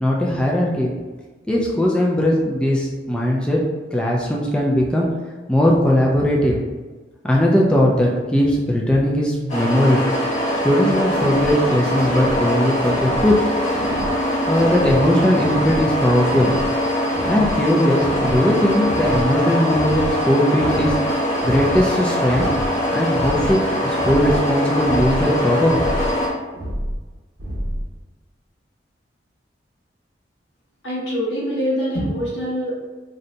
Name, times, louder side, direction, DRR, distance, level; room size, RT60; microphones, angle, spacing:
voice 1, 0.0-0.9 1.5-3.6 3.9-5.1 5.5-6.6 7.2-10.0 10.6-13.5 14.5-16.5 17.3-21.0 21.4-22.5 22.9-25.8, left 1 dB, 5° left, -3 dB, 0.3 m, -19 dB
sound 1, 9.5-26.3, equal, 40° left, 0.8 m, -22 dB
sound 2, 11.1-11.5 12.0-12.4 12.8-13.3 13.7-14.1 14.5-15.0 15.4-15.8 16.3-16.7 17.1-17.5 18.0-18.4 18.8-19.3 19.7-20.1 20.5-21.0 21.4-21.8 22.3-22.7 23.1-23.5 24.0-24.4 24.8-25.3 25.7-26.1 26.5-27.0 27.4-27.9, right 1 dB, 55° right, 0.8 m, -29 dB
voice 2, 30.8-32.7, equal, 90° left, -5 dB, 1.1 m, -24 dB
2.6 x 2.2 x 3.9 m, 1.3 s
head